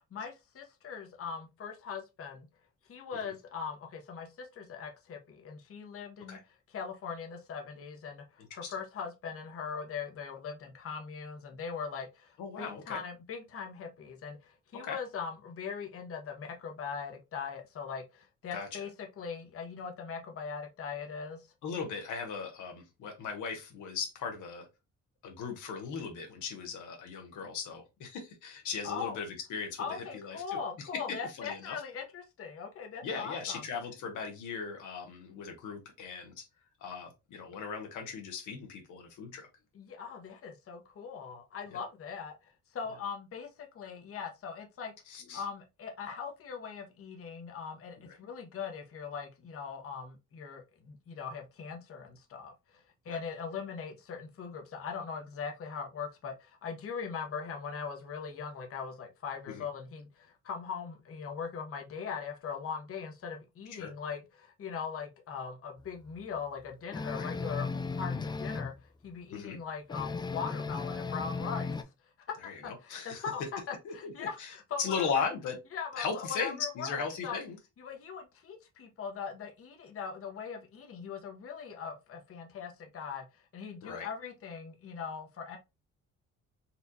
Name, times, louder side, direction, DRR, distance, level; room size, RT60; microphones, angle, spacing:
voice 1, 0.1-2.5 2.9-6.4 6.7-21.5 28.8-29.2 29.8-33.7 39.7-44.9 45.3-71.9 72.3-72.4 72.6-75.3 75.7-77.4 77.8-85.6, left 6 dB, 50° left, 0.9 m, -40 dB
voice 2, 12.4-13.0 14.8-15.0 18.5-18.8 21.6-24.7 25.2-30.6 31.1-31.8 33.0-36.5 36.8-39.5 41.7-41.8 45.1-45.4 48.0-48.2 53.1-53.2 59.5-59.6 63.7-63.9 67.1-67.3 69.3-69.6 72.4-73.2 73.8-75.6 76.0-77.6 83.8-84.1, left 5 dB, 80° left, 1.0 m, -38 dB
sound 1, 66.9-68.7 69.9-71.8, left 4 dB, 15° left, 0.4 m, -35 dB
4.2 x 2.4 x 2.7 m
cardioid pair, 90°, 30 cm